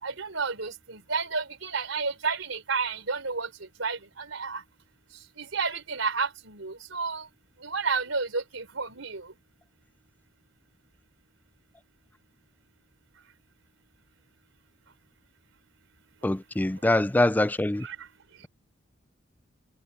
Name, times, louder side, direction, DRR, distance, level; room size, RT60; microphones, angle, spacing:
voice 1, 0.0-3.5 3.8-4.6 5.4-7.3 7.6-9.3 17.8-18.0, right 4 dB, 85° right, 4.0 m, -31 dB
voice 2, 16.2-17.8, left 1 dB, 10° left, 0.4 m, -24 dB
head